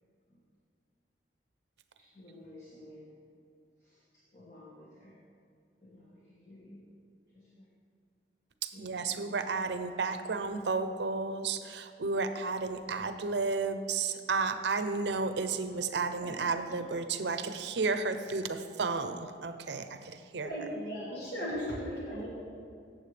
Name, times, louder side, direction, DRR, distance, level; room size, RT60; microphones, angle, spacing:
voice 1, 2.0-3.2 3.8-5.2 5.8-6.9 7.3-7.7 8.7-9.6, left 1 dB, 40° left, -7 dB, 1.5 m, -53 dB
voice 2, 8.6-19.9 20.3-20.5, right 4 dB, 75° right, 9 dB, 0.6 m, -32 dB
voice 3, 20.4-22.4, equal, 65° left, -6 dB, 2.0 m, -37 dB
15.5 x 7.5 x 3.3 m, 2.3 s
head